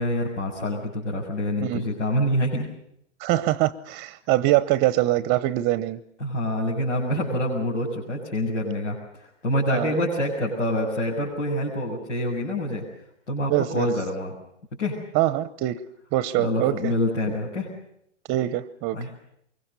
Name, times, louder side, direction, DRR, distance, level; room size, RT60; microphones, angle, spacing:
voice 1, 0.0-2.7 6.2-12.8 13.3-14.3 14.8-15.0 16.4-17.7 18.9-19.1, left 1 dB, 90° left, -4 dB, 7.5 m, -26 dB
voice 2, 3.2-6.0 9.7-10.0 13.5-13.9 15.1-15.8 16.1-16.9 18.3-19.0, right 15 dB, 30° right, 16 dB, 0.8 m, -23 dB
24.5 x 22.5 x 6.9 m, 0.74 s
hypercardioid pair, 130°, 36 cm